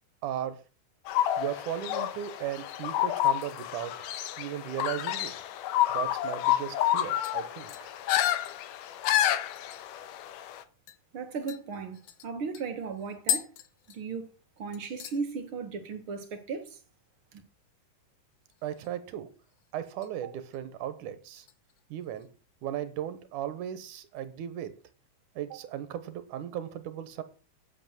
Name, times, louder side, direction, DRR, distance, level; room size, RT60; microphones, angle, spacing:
voice 1, 0.2-0.6 1.4-4.0 4.4-5.3 5.9-7.9 18.6-19.3 19.7-21.5 21.9-22.3 22.6-24.7 25.4-27.2, right 11 dB, 80° right, 2.7 m, -36 dB
sound 1, 1.1-10.6, left 12 dB, 90° left, 2.5 m, -29 dB
sound 2, 6.2-6.3 6.6-6.9 7.2-10.1 10.4-10.5 10.9-11.0 11.5-14.5 14.7-15.2 15.6-16.0 16.2-16.3 18.4-19.1 19.4-20.1 20.5-20.8 21.4-22.3 22.6-22.7, left 10 dB, 70° left, 2.4 m, -39 dB
voice 2, 11.1-13.5 13.9-14.3 14.6-16.8 17.3-17.4, right 5 dB, 50° right, 2.2 m, -36 dB
8.8 x 7.9 x 7.4 m
omnidirectional pair, 3.6 m